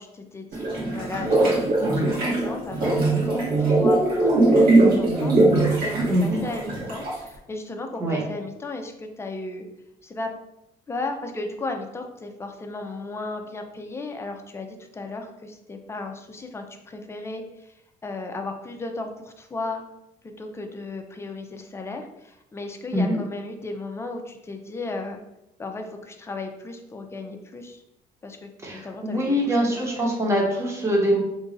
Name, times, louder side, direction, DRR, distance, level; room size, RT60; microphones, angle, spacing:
voice 1, 0.0-9.7 10.0-10.3 10.9-17.4 18.0-19.8 20.2-25.2 25.6-27.8 28.2-30.0, left 2 dB, 15° left, 4 dB, 0.5 m, -35 dB
sound 1, 0.5-7.3, right 2 dB, 60° right, 1.5 m, -20 dB
voice 2, 6.1-6.4 8.0-8.2 22.9-23.2 28.6-31.2, equal, 15° right, -2 dB, 1.0 m, -23 dB
3.1 x 2.5 x 3.8 m, 0.87 s
cardioid pair, 110°, 17 cm